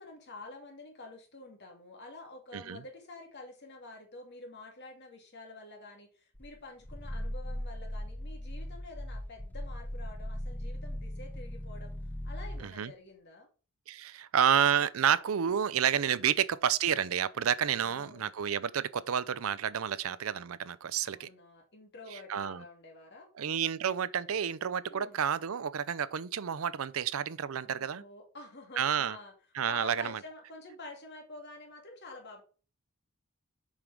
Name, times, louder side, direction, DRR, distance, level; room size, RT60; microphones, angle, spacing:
voice 1, 0.0-11.9 12.2-13.5 16.2-16.3 17.7-18.3 21.0-23.3 24.9-25.2 27.6-29.3 29.6-32.4, left 2 dB, 55° left, 2.2 m, -49 dB
Growling, 6.3-12.7, equal, 10° left, 0.5 m, -39 dB
voice 2, 12.6-12.9 13.9-21.3 22.1-22.6 23.4-28.0 28.8-29.2 29.5-30.2, right 8 dB, 85° right, 0.5 m, -30 dB
7.2 x 5.2 x 4.6 m
head